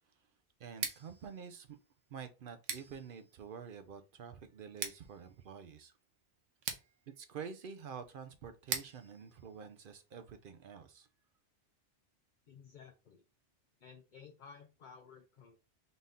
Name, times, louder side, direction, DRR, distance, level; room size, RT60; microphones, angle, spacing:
voice 1, 0.6-1.8 2.1-5.9 7.2-11.1, right 6 dB, 60° right, 0.6 m, -48 dB
Scissors, 0.7-10.5, right 6 dB, 85° right, 1.1 m, -46 dB
voice 2, 12.5-13.2 13.8-15.6, left 6 dB, 50° left, 0.6 m, -55 dB
4.0 x 2.6 x 3.5 m
omnidirectional pair, 1.2 m